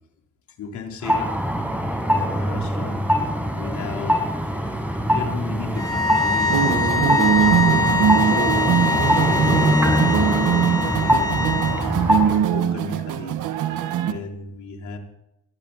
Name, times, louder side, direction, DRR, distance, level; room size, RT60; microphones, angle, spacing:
voice 1, 0.6-1.6 2.0-3.0 3.5-4.2 5.1-7.6 8.2-8.6 9.2-11.4 12.2-13.4 14.0-15.0, left 5 dB, 70° left, 2 dB, 3.8 m, -35 dB
sound 1, 1.0-12.4, equal, 5° right, 6.2 m, -23 dB
sound 2, 5.7-11.8, left 4 dB, 10° left, 4.2 m, -23 dB
sound 3, 6.5-14.1, right 9 dB, 85° right, 1.5 m, -22 dB
22.0 x 14.0 x 4.1 m, 0.86 s
cardioid pair, 90°, 30 cm